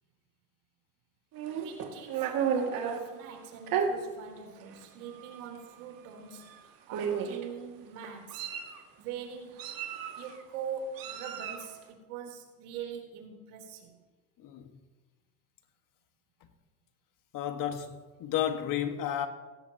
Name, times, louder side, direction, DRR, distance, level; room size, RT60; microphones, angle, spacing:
Meow, 1.3-3.0 3.7-3.9 4.7-4.8 5.2-5.4 6.4-6.5 6.9-7.4 8.0-8.8 9.6-10.3 11.0-11.7, right 8 dB, 50° right, 2.4 m, -32 dB
voice 1, 1.5-8.5 9.0-9.8 10.2-13.9, right 7 dB, 75° right, 4.0 m, -43 dB
voice 2, 14.4-14.8 17.3-19.3, left 10 dB, 45° left, 1.9 m, -32 dB
18.0 x 15.5 x 3.0 m
hypercardioid pair, 95°, 45 cm